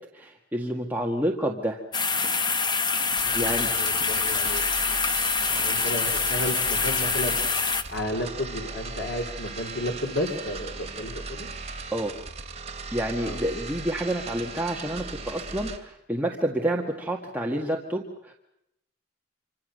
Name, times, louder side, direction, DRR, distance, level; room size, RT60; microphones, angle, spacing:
voice 1, 0.1-1.8 3.3-3.7 11.9-12.1 12.9-18.3, right 1 dB, 10° right, -1 dB, 1.8 m, -29 dB
sound 1, 1.9-7.8, left 5 dB, 25° left, 1.1 m, -25 dB
sound 2, 3.1-15.8, right 4 dB, 35° right, 3.1 m, -38 dB
voice 2, 3.2-5.0 5.4-7.4 7.9-11.5 13.2-13.4, left 1 dB, 80° left, 2 dB, 3.7 m, -33 dB
27.0 x 25.5 x 6.6 m, 0.80 s
head